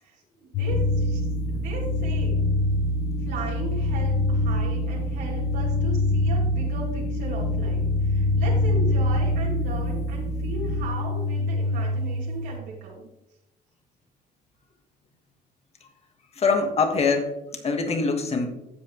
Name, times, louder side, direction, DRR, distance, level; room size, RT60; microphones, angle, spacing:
voice 1, 0.0-2.4 3.2-13.1, right 3 dB, 85° right, -4 dB, 2.3 m, -37 dB
sound 1, 0.5-12.6, left 2 dB, 75° left, 0.6 m, -26 dB
sound 2, 0.7-10.9, right 1 dB, 5° left, 0.5 m, -31 dB
voice 2, 16.4-18.5, left 4 dB, 40° left, 4 dB, 1.5 m, -24 dB
15.5 x 5.2 x 3.1 m, 0.92 s
cardioid pair, 110°, 17 cm